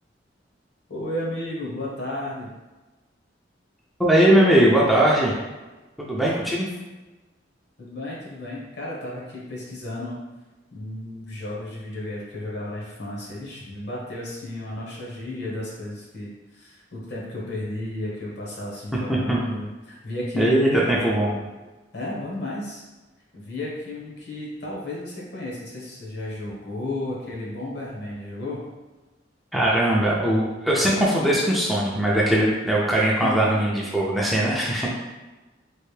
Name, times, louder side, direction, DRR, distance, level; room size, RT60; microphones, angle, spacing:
voice 1, 0.9-2.5 7.8-10.2 10.7-20.9 21.9-22.8 23.3-28.6 33.2-33.6, left 1 dB, 65° left, -4 dB, 1.1 m, -33 dB
voice 2, 4.0-5.3 6.0-6.7 19.1-19.4 20.4-21.3 29.5-34.9, right 1 dB, ahead, -6 dB, 0.4 m, -20 dB
3.3 x 2.5 x 3.2 m, 1.2 s
head